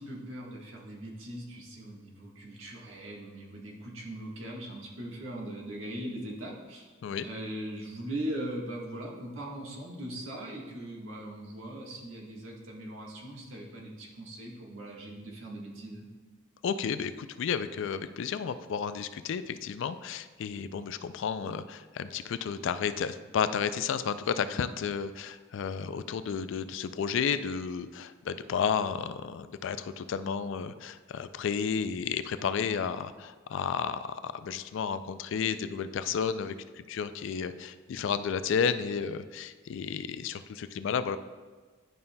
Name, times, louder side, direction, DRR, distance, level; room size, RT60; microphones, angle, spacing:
voice 1, 0.0-6.9 7.2-16.1, right 1 dB, 70° right, -2 dB, 1.4 m, -40 dB
voice 2, 16.6-41.2, left 6 dB, 60° left, 12 dB, 0.3 m, -32 dB
11.0 x 5.4 x 2.2 m, 1.5 s
head